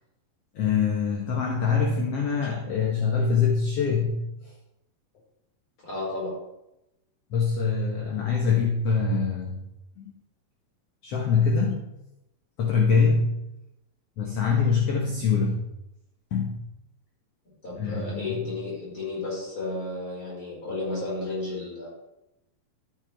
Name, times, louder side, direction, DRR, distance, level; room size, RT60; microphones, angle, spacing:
voice 1, 0.5-4.5 7.3-9.6 10.0-10.1 11.0-11.8 12.6-13.3 14.2-15.6 16.3-16.6 17.7-18.5, left 5 dB, 65° left, 0 dB, 1.6 m, -24 dB
voice 2, 5.9-6.3 17.6-21.9, left 2 dB, 35° left, -6 dB, 5.7 m, -32 dB
12.5 x 9.8 x 3.5 m, 0.91 s
omnidirectional pair, 4.1 m